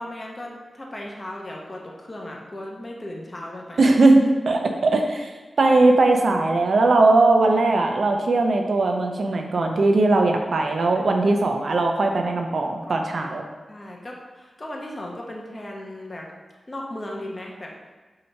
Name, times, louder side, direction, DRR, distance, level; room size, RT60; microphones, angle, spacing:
voice 1, 0.0-3.9 10.9-11.0 12.8-12.9 13.2-13.4 13.7-16.3 16.7-18.0, left 1 dB, 30° left, -1 dB, 0.5 m, -36 dB
voice 2, 3.8-5.3 5.6-13.4, right 2 dB, 65° right, 3 dB, 0.4 m, -19 dB
2.8 x 2.8 x 4.3 m, 1.3 s
wide cardioid pair, 100°, 0 cm